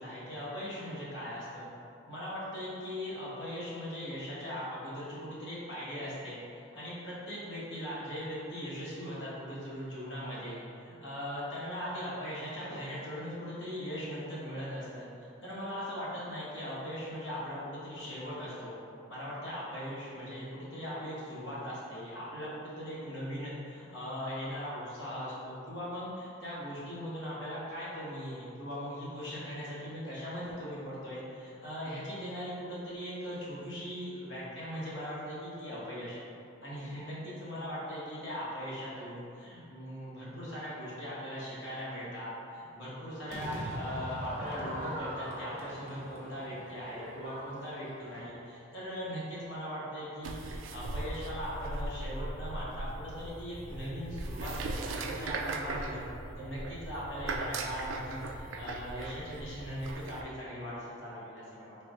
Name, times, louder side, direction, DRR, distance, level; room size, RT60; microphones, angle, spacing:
voice 1, 0.0-1.7 2.1-15.0 15.4-18.7 19.1-36.2 36.6-56.0 56.4-61.8, equal, 70° left, -8 dB, 1.3 m, -39 dB
Crowd / Fireworks, 43.3-48.5, equal, 35° right, 0.7 m, -41 dB
sound 1, 50.2-60.2, right 2 dB, 85° right, 0.3 m, -39 dB
4.5 x 2.4 x 3.6 m, 2.6 s
head